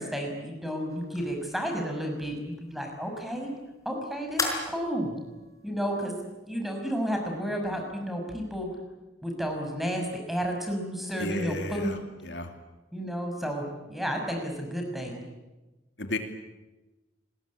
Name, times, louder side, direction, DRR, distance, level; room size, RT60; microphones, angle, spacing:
voice 1, 0.0-3.5 3.8-5.2 5.6-6.1 6.5-8.7 9.2-12.1 12.9-15.2, equal, ahead, 3 dB, 6.1 m, -32 dB
sound 1, 0.9-7.8, left 3 dB, 20° left, 5.5 m, -40 dB
voice 2, 11.2-12.0 12.2-12.5 16.0-16.2, left 2 dB, 70° left, 5 dB, 2.8 m, -33 dB
29.5 x 21.5 x 8.6 m, 1.1 s
head